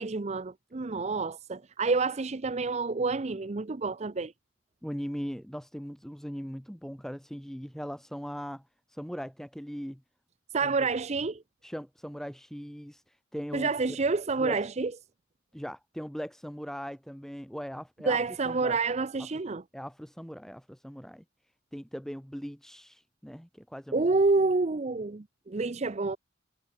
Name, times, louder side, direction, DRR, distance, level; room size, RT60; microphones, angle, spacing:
voice 1, 0.0-4.3 10.5-11.4 13.5-14.9 18.1-19.6 23.9-26.2, right 3 dB, 35° right, 0.6 m, -28 dB
voice 2, 4.8-10.0 10.6-10.9 11.6-13.7 14.4-14.6 15.5-18.2 18.4-18.8 19.7-21.2 21.7-24.1, equal, ahead, 2.8 m, -39 dB
head